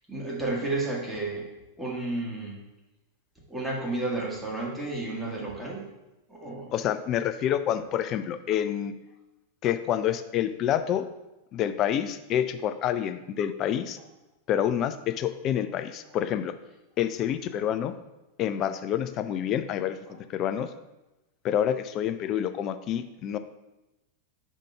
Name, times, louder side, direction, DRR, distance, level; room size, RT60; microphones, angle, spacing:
voice 1, 0.1-1.5 1.8-2.7 3.5-5.8 6.3-6.7, right 2 dB, 5° right, -4 dB, 1.7 m, -32 dB
voice 2, 6.7-8.9 9.6-11.0 11.5-14.0 14.5-16.5 17.0-18.0 18.4-20.7 21.4-23.4, left 10 dB, 35° left, 10 dB, 0.4 m, -28 dB
5.1 x 3.7 x 5.6 m, 0.98 s
figure-of-eight pair, 90°, 0 cm